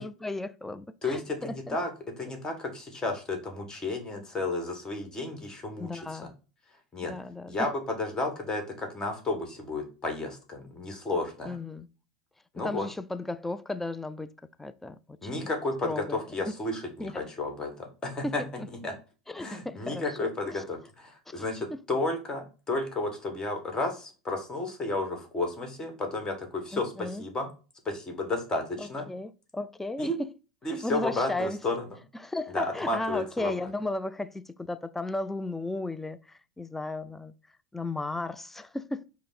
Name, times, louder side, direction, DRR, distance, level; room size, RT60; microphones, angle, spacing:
voice 1, 0.0-1.8 5.8-6.3 7.0-7.7 11.5-11.9 12.6-14.3 14.6-15.5 15.8-16.6 17.0-17.2 18.2-18.7 19.3-20.0 20.5-20.6 21.3-21.4 21.7-21.8 26.7-27.2 28.8-30.1 30.8-31.6 32.1-37.3 37.7-39.0, left 2 dB, 10° left, 0.3 m, -35 dB
voice 2, 1.0-1.9 2.2-6.2 6.9-7.1 7.5-11.6 12.5-12.9 15.2-18.4 18.8-18.9 19.4-27.5 27.8-29.1 30.0-30.1 30.6-31.9 32.5-33.5, left 2 dB, 25° left, 1.4 m, -32 dB
5.1 x 2.1 x 4.1 m
hypercardioid pair, 85°, 3 cm